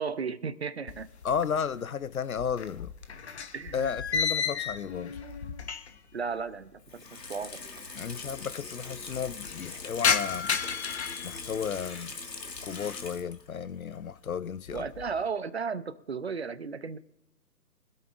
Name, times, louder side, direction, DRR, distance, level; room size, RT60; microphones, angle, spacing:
voice 1, 0.0-1.1 3.5-3.9 6.1-7.6 14.7-17.0, right 5 dB, 40° right, 0.7 m, -34 dB
sound 1, 0.9-1.8 2.0-6.1 6.4-6.5 7.4-7.5 7.6-7.7 8.0-8.5 8.9-12.1 12.6-13.1 13.5-13.9 14.3-15.2, left 6 dB, 40° left, 1.1 m, -33 dB
voice 2, 1.2-2.9 3.7-5.2 7.9-10.5 11.2-12.1 12.6-14.9, left 7 dB, 60° left, 0.6 m, -33 dB
Water tap faucet / Sink (filling or washing), 6.8-13.5 13.9-14.0, left 4 dB, 75° left, 2.0 m, -42 dB
25.0 x 8.4 x 2.5 m
figure-of-eight pair, 150°, 49 cm